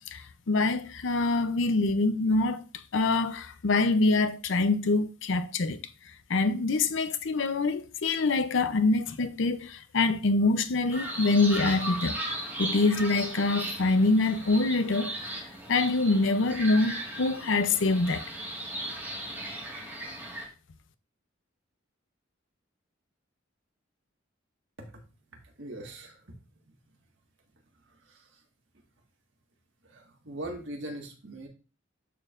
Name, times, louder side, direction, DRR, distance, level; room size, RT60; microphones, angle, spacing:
voice 1, 0.1-5.8 6.3-12.2 12.6-15.1 15.7-18.2, left 3 dB, 70° left, 0.6 m, -25 dB
sound 1, 10.9-20.5, right 1 dB, 10° right, 1.7 m, -37 dB
voice 2, 25.6-26.4 28.0-28.4 29.8-31.5, right 1 dB, 65° right, 1.7 m, -41 dB
12.5 x 4.5 x 2.5 m
head